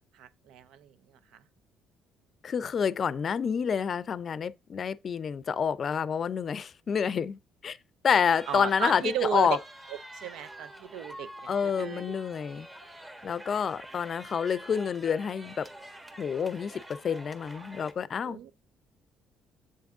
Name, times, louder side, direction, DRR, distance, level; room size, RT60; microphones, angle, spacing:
voice 1, 0.1-0.9 8.5-9.6 10.1-12.2 18.2-18.5, right 11 dB, 80° right, 0.5 m, -35 dB
voice 2, 2.4-7.8 8.0-9.6 11.5-12.7 13.2-15.7 16.2-16.7 17.0-18.4, left 7 dB, 50° left, 0.5 m, -28 dB
sound 1, 8.3-17.9, right 1 dB, 20° right, 1.2 m, -47 dB
7.6 x 3.6 x 3.6 m
cardioid pair, 85°, 0 cm